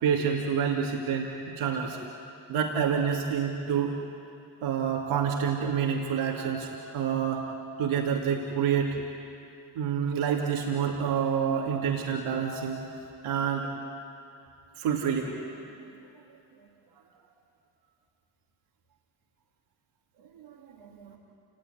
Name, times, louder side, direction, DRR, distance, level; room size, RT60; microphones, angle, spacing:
voice 1, 0.0-2.0 2.5-4.0 4.6-7.5 7.8-9.0 9.7-12.8 13.2-13.7 14.8-15.3 20.3-21.2, right 7 dB, 80° right, -1 dB, 2.7 m, -28 dB
28.5 x 19.0 x 9.8 m, 2.7 s
hypercardioid pair, 50°, 48 cm